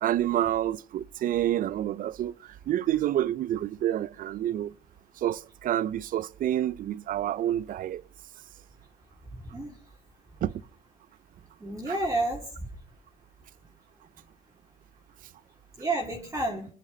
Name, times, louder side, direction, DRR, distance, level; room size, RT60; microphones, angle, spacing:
voice 1, 0.0-4.7 5.2-8.0 10.4-10.5 11.9-12.0, right 12 dB, 55° right, 0.6 m, -28 dB
voice 2, 11.6-12.7 15.8-16.7, right 2 dB, 15° right, 2.6 m, -30 dB
25.0 x 10.5 x 3.9 m
cardioid pair, 110°, 17 cm